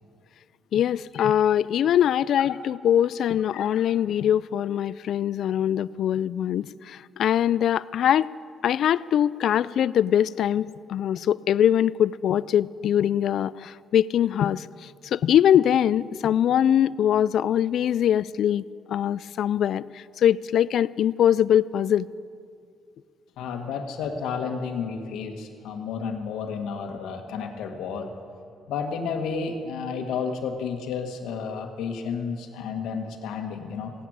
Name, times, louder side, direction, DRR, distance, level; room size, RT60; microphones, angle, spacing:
voice 1, 0.7-8.3 8.6-18.6 18.9-22.1, left 10 dB, 70° left, 19 dB, 0.3 m, -22 dB
voice 2, 23.4-28.1 28.7-33.9, left 6 dB, 90° left, 4 dB, 1.6 m, -31 dB
16.5 x 9.2 x 8.8 m, 2.3 s
cardioid pair, 90°, 0 cm